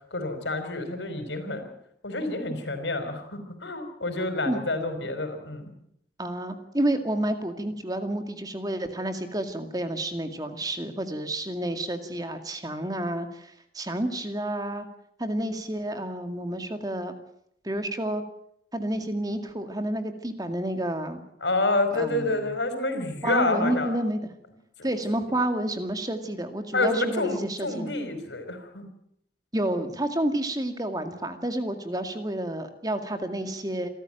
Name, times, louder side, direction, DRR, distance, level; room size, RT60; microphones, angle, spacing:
voice 1, 0.1-1.7 2.0-5.7 21.4-24.0 24.8-24.9 26.7-28.9, left 2 dB, 85° left, 8 dB, 5.1 m, -28 dB
voice 2, 6.2-14.9 15.2-17.1 17.6-18.2 18.7-21.2 21.9-22.5 23.2-24.2 24.8-27.9 29.5-33.9, right 1 dB, 20° right, 7 dB, 2.1 m, -30 dB
27.5 x 14.0 x 9.1 m, 0.73 s
head